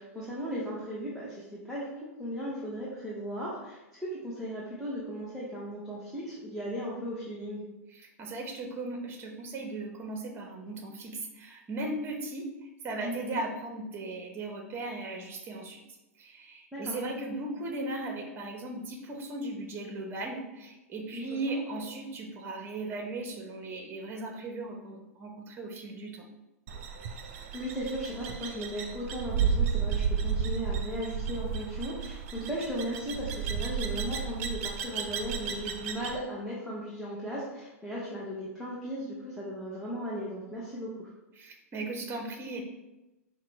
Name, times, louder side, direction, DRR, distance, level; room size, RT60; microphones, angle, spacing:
voice 1, 0.0-1.9 2.2-7.6 13.0-13.4 16.7-17.0 21.1-21.8 27.2-41.1, equal, ahead, -8 dB, 1.0 m, -37 dB
voice 2, 7.9-15.8 16.2-26.3 41.4-42.6, right 2 dB, 25° right, 3 dB, 0.9 m, -37 dB
sound 1, 26.7-36.2, right 6 dB, 55° right, 0.5 m, -33 dB
5.7 x 2.3 x 3.3 m, 0.98 s
hypercardioid pair, 105°, 8 cm